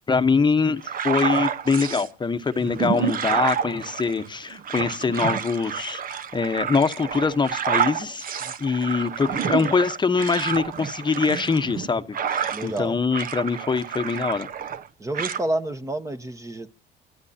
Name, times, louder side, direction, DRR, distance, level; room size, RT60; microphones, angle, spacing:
voice 1, 0.1-14.5, left 4 dB, 25° left, 1.0 m, -24 dB
sound 1, 0.8-2.1 2.6-12.8 13.1-14.9 15.1-15.4, right 8 dB, 45° right, 1.0 m, -29 dB
voice 2, 12.5-13.0 15.0-16.7, right 1 dB, 15° right, 1.1 m, -29 dB
29.0 x 14.0 x 2.8 m
cardioid pair, 100°, 19 cm